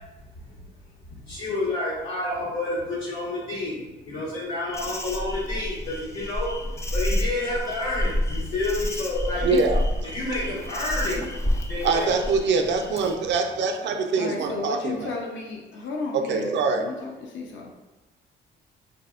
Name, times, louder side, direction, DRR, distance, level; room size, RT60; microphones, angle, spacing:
voice 1, 1.3-9.6 10.0-11.2 11.7-12.1, left 2 dB, 85° left, -8 dB, 1.4 m, -29 dB
Insect, 4.7-13.1, left 1 dB, 15° left, 0.3 m, -29 dB
voice 2, 9.4-10.1 11.8-15.1 16.1-16.9, right 4 dB, 65° right, 5 dB, 0.4 m, -24 dB
voice 3, 14.2-17.7, left 3 dB, 70° left, -1 dB, 0.5 m, -33 dB
3.3 x 2.6 x 2.3 m, 1.1 s
cardioid pair, 90°, 20 cm